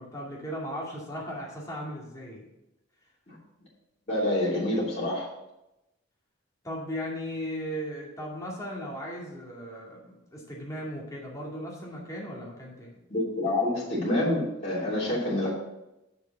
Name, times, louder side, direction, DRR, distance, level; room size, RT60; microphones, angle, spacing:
voice 1, 0.0-2.5 6.6-13.0, equal, 15° left, -4 dB, 2.4 m, -37 dB
voice 2, 4.1-5.3 13.1-15.5, left 1 dB, 35° left, -7 dB, 3.2 m, -27 dB
7.0 x 6.8 x 6.0 m, 0.92 s
head